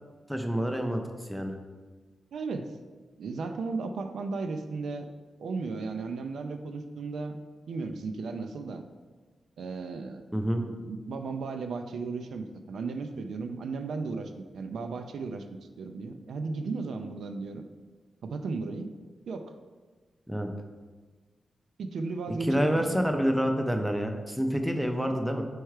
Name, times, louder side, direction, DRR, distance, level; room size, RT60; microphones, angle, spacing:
voice 1, 0.3-1.6 10.3-10.7 20.3-20.5 22.4-25.5, equal, ahead, 4 dB, 0.4 m, -28 dB
voice 2, 2.3-2.7 3.2-5.1 5.4-7.4 7.7-8.8 9.6-10.2 10.7-15.5 15.8-17.6 18.2-18.9 19.3-19.5 21.8-23.0, right 4 dB, 85° right, 7 dB, 0.4 m, -35 dB
4.6 x 4.5 x 4.7 m, 1.4 s
wide cardioid pair, 165°, 0 cm